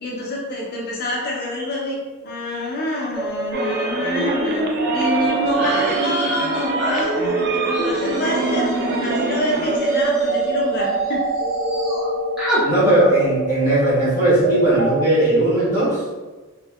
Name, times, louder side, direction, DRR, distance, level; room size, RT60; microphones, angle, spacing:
voice 1, 0.0-2.0 2.2-4.6 4.9-11.2, left 1 dB, 45° left, -3 dB, 0.5 m, -26 dB
sound 1, 3.1-15.0, right 2 dB, 70° right, 1.4 m, -25 dB
sound 2, 3.5-9.8, right 3 dB, 45° right, 0.3 m, -27 dB
sound 3, 5.5-11.1 11.3-12.1 12.4-12.6, equal, ahead, 0.7 m, -29 dB
voice 2, 12.6-16.0, right 1 dB, 20° right, -11 dB, 1.3 m, -17 dB
3.4 x 2.1 x 2.3 m, 1.3 s
head